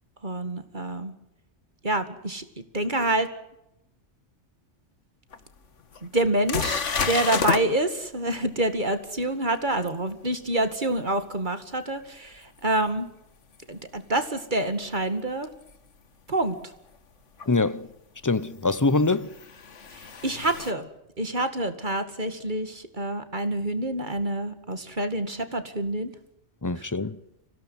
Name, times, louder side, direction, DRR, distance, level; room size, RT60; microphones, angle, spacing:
voice 1, 0.2-1.1 1.8-2.4 2.7-3.3 6.0-13.1 13.7-15.5 16.3-16.6 20.0-20.9 21.2-26.1 26.8-26.9, right 2 dB, 40° right, 2.4 m, -27 dB
sound 1, 5.3-5.4 5.9-6.0 6.5-7.6 12.8-12.9 15.6-15.7 17.4-17.5 18.9-20.7, left 5 dB, 75° left, 1.8 m, -29 dB
voice 2, 17.5-17.9 18.2-19.3 26.6-27.2, left 3 dB, 20° left, 0.8 m, -24 dB
25.5 x 17.5 x 9.6 m
omnidirectional pair, 1.3 m